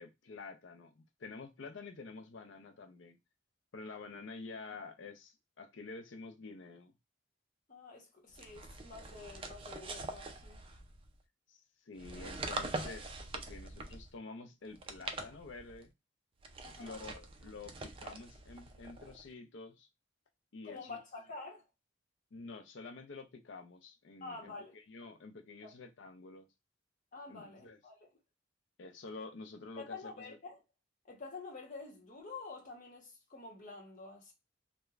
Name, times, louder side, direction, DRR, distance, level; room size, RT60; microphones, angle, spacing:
voice 1, 0.0-3.2 3.7-6.9 11.5-15.9 16.8-19.9 20.5-21.0 22.3-26.5 27.3-27.8 28.8-30.4, left 3 dB, 65° left, 0.5 m, -49 dB
voice 2, 7.7-10.6 16.6-17.0 20.6-21.6 24.2-24.8 25.6-25.7 27.1-28.1 29.8-30.6 31.1-34.3, left 3 dB, 40° left, 0.9 m, -48 dB
sound 1, 8.3-11.1 11.9-14.1 14.7-15.8 16.4-19.3, right 2 dB, 30° right, 0.4 m, -44 dB
3.1 x 2.2 x 2.3 m
head